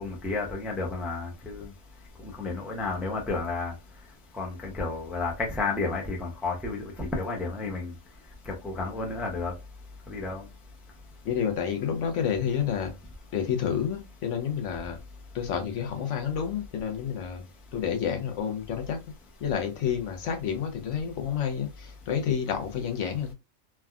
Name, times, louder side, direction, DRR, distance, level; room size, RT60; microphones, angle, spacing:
voice 1, 0.0-1.7 2.2-3.7 4.4-7.9 8.5-9.5 10.1-10.4, left 3 dB, ahead, 0.5 m, -31 dB
voice 2, 11.2-12.9 13.3-15.0 15.3-17.4 17.7-19.0 19.4-23.3, left 8 dB, 70° left, 1.0 m, -29 dB
3.4 x 2.2 x 2.3 m
omnidirectional pair, 1.3 m